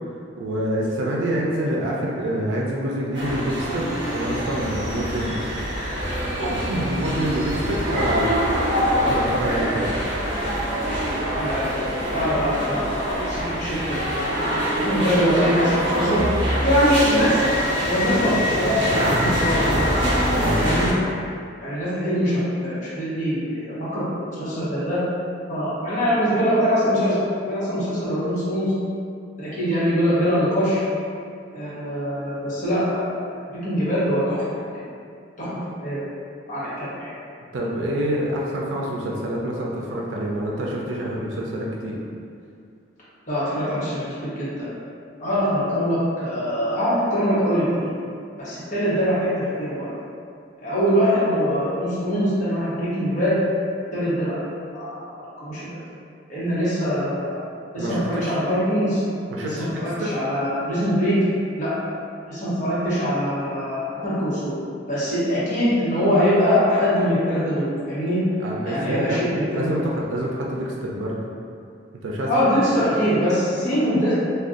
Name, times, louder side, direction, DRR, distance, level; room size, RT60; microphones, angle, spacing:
voice 1, 0.4-5.8 6.4-8.3 9.0-9.9 20.3-20.7 37.5-42.0 57.8-58.4 59.3-60.2 68.4-71.3 72.0-72.3, right 1 dB, 90° right, -3 dB, 0.4 m, -27 dB
sound 1, 3.1-20.9, equal, 25° right, 0.7 m, -24 dB
voice 2, 11.3-11.7 12.1-14.2 14.8-16.2 16.6-19.6 20.6-20.9 21.6-22.3 22.6-25.0 25.5-27.1 27.5-28.7 29.4-30.8 31.5-34.4 35.4-35.5 35.8-36.0 36.5-37.1 43.3-44.7 45.2-47.9 48.4-49.9 50.6-53.4 53.9-54.3 54.7-55.6 56.3-57.4 57.7-59.0 59.4-61.2 61.6-61.7 62.3-64.5 64.9-68.2 68.6-69.7 72.3-74.1, equal, 45° left, -11 dB, 1.0 m, -23 dB
2.5 x 2.2 x 3.6 m, 2.4 s
head